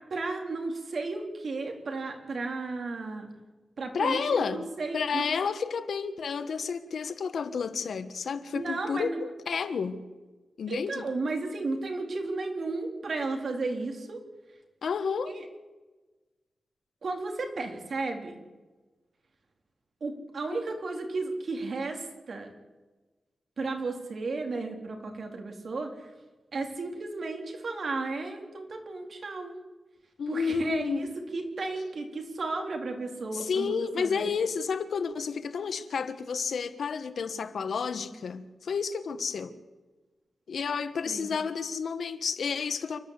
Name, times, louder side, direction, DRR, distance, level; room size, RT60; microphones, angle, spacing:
voice 1, 0.1-3.3 3.8-5.3 8.6-9.2 10.7-14.2 15.3-15.4 17.0-18.4 20.0-22.5 23.6-25.9 26.5-29.5 30.3-34.3 41.1-41.4, right 3 dB, 55° right, 3.6 m, -34 dB
voice 2, 3.9-4.7 4.9-10.0 10.6-11.1 14.8-15.4 20.5-20.6 30.2-31.2 33.3-39.6 40.5-43.0, left 5 dB, 75° left, 1.4 m, -31 dB
29.0 x 11.5 x 8.3 m
wide cardioid pair, 135°, 0 cm